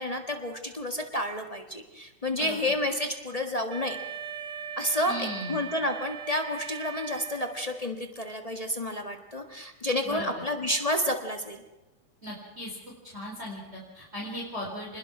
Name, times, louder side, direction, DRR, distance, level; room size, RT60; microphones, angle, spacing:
voice 1, 0.0-4.0 4.8-11.6, left 1 dB, 45° left, 4 dB, 0.4 m, -30 dB
Wind instrument woodwind instrument, 3.7-7.9, right 7 dB, 65° right, 2.8 m, -39 dB
voice 2, 5.1-5.6 10.0-10.3 12.2-12.7 13.1-15.0, left 1 dB, 20° right, -3 dB, 4.4 m, -37 dB
27.0 x 21.0 x 6.1 m, 1.0 s
omnidirectional pair, 3.5 m